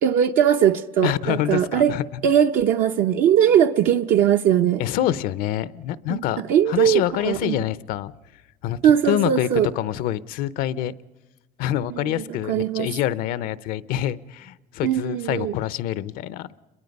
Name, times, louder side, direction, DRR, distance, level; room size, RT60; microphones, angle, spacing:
voice 1, 0.0-2.0 2.2-4.8 6.1-6.2 6.5-7.6 8.8-9.7 12.0-12.9 14.8-15.5, right 9 dB, 80° right, 0.8 m, -20 dB
voice 2, 1.0-2.0 4.8-8.1 8.6-9.5 9.8-10.9 11.6-16.6, left 12 dB, 85° left, 0.7 m, -26 dB
29.0 x 22.5 x 5.3 m
cardioid pair, 135°, 14 cm